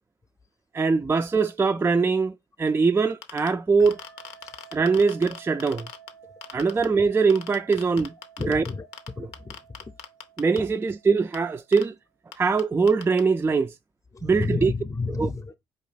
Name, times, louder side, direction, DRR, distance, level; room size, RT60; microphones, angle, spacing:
voice 1, 0.7-4.0 4.7-5.9 6.5-8.1 8.5-8.6 10.4-11.9 12.4-13.7 14.2-14.7 15.1-15.3, right 4 dB, 20° right, 0.3 m, -22 dB
sound 1, 3.1-3.5 3.9-6.1 6.4-6.9 7.3-9.1 9.3-10.6 11.3-11.4 11.7-11.8 12.3-12.4 12.6-12.7 12.9-13.2, left 9 dB, 80° left, 0.6 m, -38 dB
sound 2, 3.8-11.9, right 8 dB, 85° right, 0.6 m, -52 dB
voice 2, 8.4-8.9 9.2-9.6 14.1-15.6, left 3 dB, 25° left, 0.6 m, -30 dB
4.6 x 2.7 x 3.3 m
hypercardioid pair, 55°, 12 cm